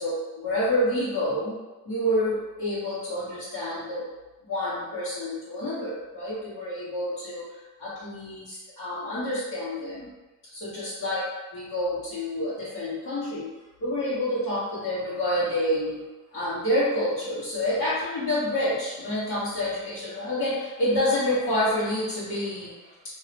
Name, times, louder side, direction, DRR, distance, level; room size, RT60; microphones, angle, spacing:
voice 1, 0.0-1.6 1.8-4.1 4.5-10.1 10.5-11.2 11.5-13.5 13.8-16.0 16.3-22.9, left 1 dB, 80° left, -13 dB, 1.5 m, -28 dB
2.8 x 2.7 x 3.4 m, 1.1 s
cardioid pair, 90°, 30 cm